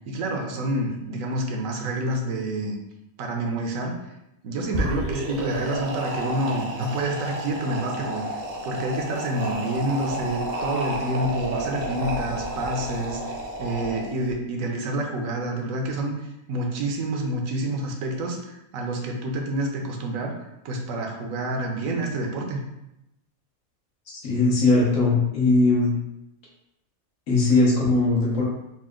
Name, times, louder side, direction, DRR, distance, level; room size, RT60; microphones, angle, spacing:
voice 1, 0.1-2.8 3.2-4.0 4.4-20.3 20.6-22.6, right 1 dB, 75° right, 2 dB, 1.0 m, -28 dB
sound 1, 4.6-14.3, right 1 dB, 55° right, 0.7 m, -31 dB
voice 2, 24.2-25.9 27.3-28.4, left 3 dB, 80° left, -5 dB, 1.5 m, -19 dB
4.1 x 2.1 x 3.6 m, 0.88 s
omnidirectional pair, 1.4 m